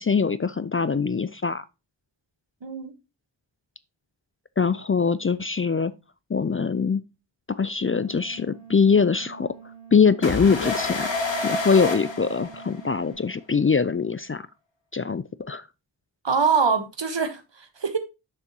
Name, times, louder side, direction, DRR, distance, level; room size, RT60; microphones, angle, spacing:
voice 1, 0.0-1.6 4.6-5.9 6.3-7.0 7.5-9.5 9.9-11.1 11.4-14.5 14.9-15.6, left 5 dB, 30° left, 0.4 m, -23 dB
voice 2, 2.6-2.9 16.2-18.0, right 5 dB, 70° right, 1.4 m, -24 dB
sound 1, 7.9-13.1, right 8 dB, 5° left, 2.8 m, -47 dB
sound 2, 10.2-13.0, left 3 dB, 75° left, 2.0 m, -28 dB
6.8 x 6.8 x 2.9 m
wide cardioid pair, 60°, 45 cm